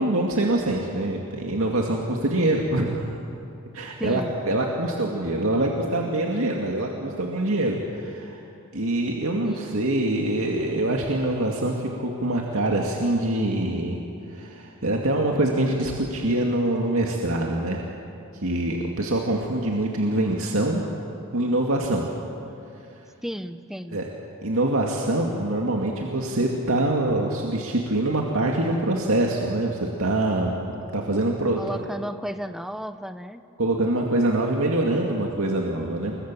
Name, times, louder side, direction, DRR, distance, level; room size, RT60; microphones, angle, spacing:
voice 1, 0.0-3.2 3.7-8.4 8.7-14.0 14.3-17.8 18.3-20.8 21.3-22.0 23.9-24.0 24.4-31.8 33.6-36.2, right 1 dB, 75° right, 0 dB, 2.2 m, -24 dB
voice 2, 4.0-4.3 9.4-9.8 23.2-24.1 31.6-33.4, equal, ahead, 10 dB, 0.7 m, -33 dB
29.0 x 22.0 x 7.6 m, 2.7 s
head